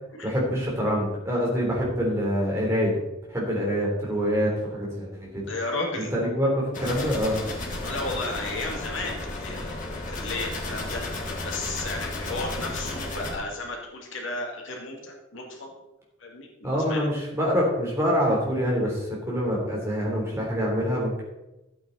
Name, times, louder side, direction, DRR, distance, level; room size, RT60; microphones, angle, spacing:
voice 1, 0.2-3.0 3.3-5.5 6.1-7.4 16.6-21.2, equal, 15° right, -4 dB, 3.5 m, -25 dB
voice 2, 5.5-6.1 7.8-15.7 16.2-17.1, left 2 dB, 65° left, 0 dB, 2.3 m, -34 dB
sound 1, 6.7-13.4, left 2 dB, 40° left, 2.3 m, -33 dB
13.0 x 8.8 x 4.1 m, 0.97 s
head